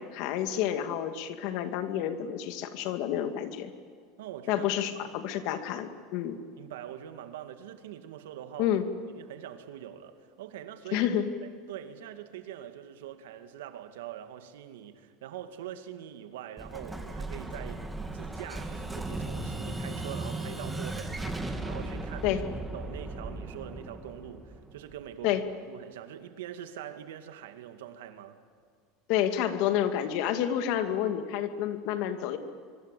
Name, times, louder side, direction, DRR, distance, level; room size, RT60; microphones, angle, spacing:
voice 1, 0.0-3.7 4.5-6.4 8.6-8.8 10.9-11.3 22.2-22.4 25.2-25.4 29.1-32.4, left 10 dB, 60° left, 2.3 m, -29 dB
voice 2, 4.2-4.7 5.0-5.2 6.6-8.8 9.2-11.1 11.4-17.8 18.1-22.3 22.7-28.4, right 10 dB, 90° right, 2.2 m, -43 dB
Explosion, 16.6-25.2, right 2 dB, 5° right, 2.2 m, -37 dB
25.5 x 24.0 x 8.5 m
supercardioid pair, 140°, 0 cm